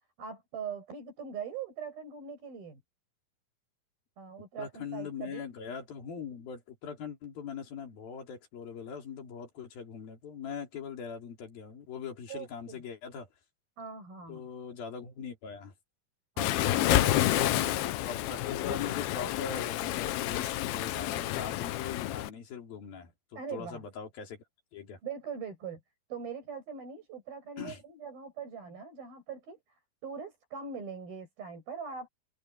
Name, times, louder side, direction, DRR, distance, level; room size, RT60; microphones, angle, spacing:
voice 1, 0.2-2.8 4.2-5.4 12.3-12.8 13.8-14.4 16.4-18.1 23.3-23.8 25.0-25.8 26.1-29.6 30.0-32.1, right 6 dB, 75° right, 9.1 m, -41 dB
voice 2, 4.6-13.3 14.3-15.7 17.3-24.4 24.7-25.0 27.6-27.8, left 6 dB, 70° left, 5.2 m, -41 dB
Waves surf, 16.4-22.3, left 15 dB, 90° left, 2.8 m, -29 dB
omnidirectional pair, 4.3 m